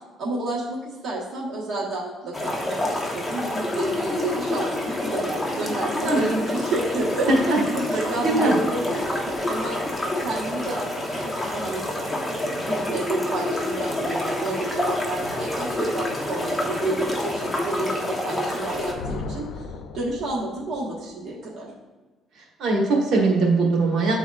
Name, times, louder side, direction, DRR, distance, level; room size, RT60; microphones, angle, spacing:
voice 1, 0.2-9.8 10.2-11.9 12.2-19.6 19.9-21.7, right 2 dB, 55° right, -6 dB, 1.3 m, -30 dB
sound 1, 2.3-18.9, left 1 dB, 10° left, 1.1 m, -28 dB
voice 2, 7.3-7.6 8.2-8.5 22.6-24.1, right 3 dB, 70° right, -2 dB, 1.5 m, -20 dB
Thunder, 18.7-20.9, left 3 dB, 75° left, 0.5 m, -36 dB
10.5 x 4.0 x 2.5 m, 1.3 s
cardioid pair, 105°, 0 cm